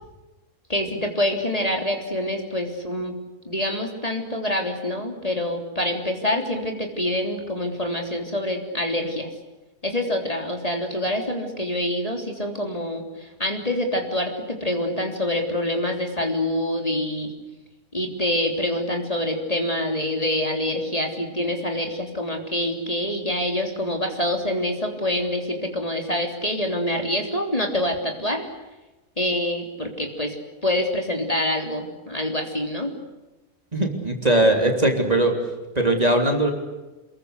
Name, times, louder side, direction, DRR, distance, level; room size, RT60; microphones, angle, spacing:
voice 1, 0.7-3.2 3.5-9.3 9.8-17.3 17.9-28.5 29.2-30.4 30.6-32.9, left 1 dB, 25° left, 3 dB, 3.6 m, -26 dB
voice 2, 33.7-35.3 35.8-36.5, right 1 dB, 25° right, 3 dB, 3.6 m, -20 dB
28.5 x 22.0 x 8.3 m, 1.1 s
omnidirectional pair, 1.5 m